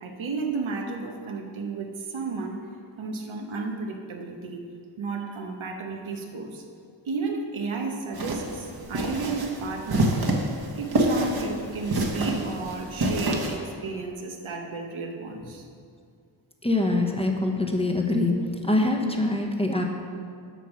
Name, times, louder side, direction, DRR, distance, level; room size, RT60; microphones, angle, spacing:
voice 1, 0.0-2.6 3.0-4.6 5.0-6.6 7.0-10.1 10.8-15.6, right 4 dB, 85° right, 3 dB, 1.1 m, -33 dB
sound 1, 8.1-13.6, right 1 dB, 50° right, 1.3 m, -27 dB
voice 2, 16.6-18.3 18.6-19.8, left 2 dB, 10° left, 2 dB, 1.0 m, -24 dB
8.3 x 5.6 x 6.2 m, 2.2 s
wide cardioid pair, 75°, 47 cm